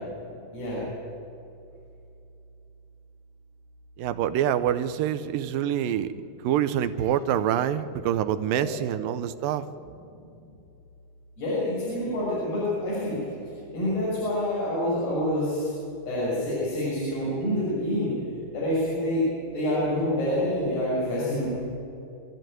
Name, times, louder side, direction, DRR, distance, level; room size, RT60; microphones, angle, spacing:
voice 1, 4.0-6.1 6.4-9.7, right 10 dB, 75° right, 12 dB, 2.2 m, -26 dB
voice 2, 11.4-13.2 13.7-15.7 16.1-18.1 18.5-19.2 19.5-21.5, left 1 dB, 80° left, -8 dB, 8.6 m, -27 dB
27.0 x 14.0 x 9.2 m, 2.7 s
omnidirectional pair, 4.5 m